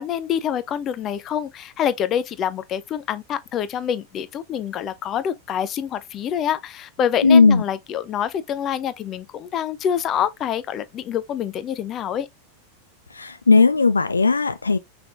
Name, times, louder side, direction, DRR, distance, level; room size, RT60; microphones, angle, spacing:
voice 1, 0.0-12.3, left 9 dB, 30° left, 0.6 m, -26 dB
voice 2, 7.2-7.6 13.1-14.8, left 4 dB, 75° left, 0.4 m, -16 dB
5.8 x 3.5 x 2.5 m
figure-of-eight pair, 90°, 0 cm